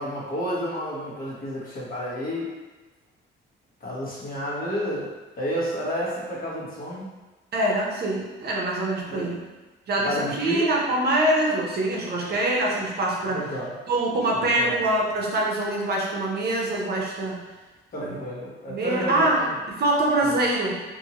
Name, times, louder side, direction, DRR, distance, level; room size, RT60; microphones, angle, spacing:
voice 1, 0.0-2.5 3.8-7.1 9.1-9.3 10.0-10.6 13.3-13.8 14.3-14.8 17.9-19.6, equal, 45° left, -6 dB, 1.1 m, -31 dB
voice 2, 7.5-9.4 9.9-13.5 13.9-17.5 18.7-19.4 19.7-21.0, right 1 dB, 55° right, -2 dB, 0.7 m, -24 dB
2.7 x 2.6 x 2.8 m, 1.2 s
cardioid pair, 90°, 20 cm